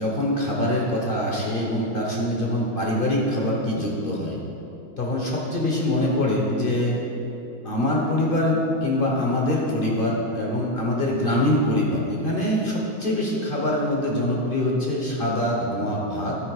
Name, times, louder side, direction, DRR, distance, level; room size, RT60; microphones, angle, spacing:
voice 1, 0.0-4.4 5.0-7.0 7.6-16.4, left 1 dB, 40° left, -2 dB, 0.8 m, -24 dB
12.0 x 4.4 x 4.8 m, 2.9 s
omnidirectional pair, 2.1 m